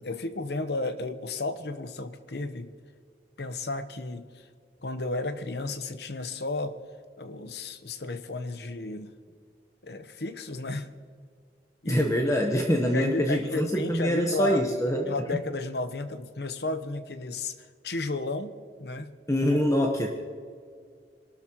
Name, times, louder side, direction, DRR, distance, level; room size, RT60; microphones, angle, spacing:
voice 1, 0.0-2.7 3.4-4.5 4.8-6.8 7.2-9.1 9.8-10.9 11.8-12.0 12.9-14.7 15.1-18.5 18.8-19.1, left 2 dB, 65° left, 10 dB, 1.0 m, -33 dB
voice 2, 11.8-15.0 19.3-20.1, equal, 15° left, 2 dB, 1.0 m, -25 dB
25.0 x 12.5 x 3.0 m, 2.1 s
head